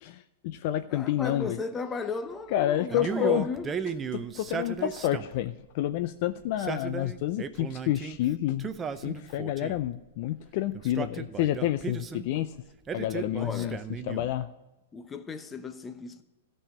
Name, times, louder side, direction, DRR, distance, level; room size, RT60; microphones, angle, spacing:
voice 1, 0.0-1.6 2.5-3.5 4.1-8.7 9.0-12.6 12.9-13.8 14.1-14.5, left 13 dB, 50° left, 0.5 m, -29 dB
voice 2, 0.9-3.7 13.4-13.8 14.9-16.2, left 4 dB, 15° left, 0.9 m, -35 dB
Male speech man speaking, 2.9-5.5 6.4-8.2 8.6-9.9 10.7-12.3 12.9-14.4, right 6 dB, 20° right, 0.6 m, -35 dB
13.0 x 5.6 x 8.7 m
hypercardioid pair, 120°, 0 cm